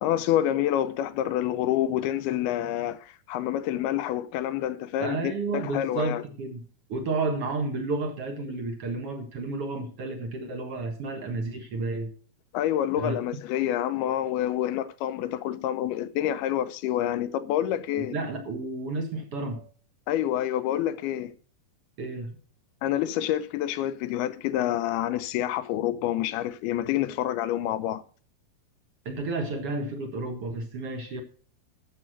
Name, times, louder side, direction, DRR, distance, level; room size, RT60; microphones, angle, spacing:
voice 1, 0.0-6.2 12.5-18.2 20.1-21.3 22.8-28.0, left 12 dB, 80° left, 2.6 m, -27 dB
voice 2, 5.0-12.1 13.0-13.2 18.0-19.7 22.0-22.4 29.0-31.2, right 3 dB, 55° right, 1.7 m, -31 dB
12.5 x 7.6 x 6.3 m
omnidirectional pair, 4.6 m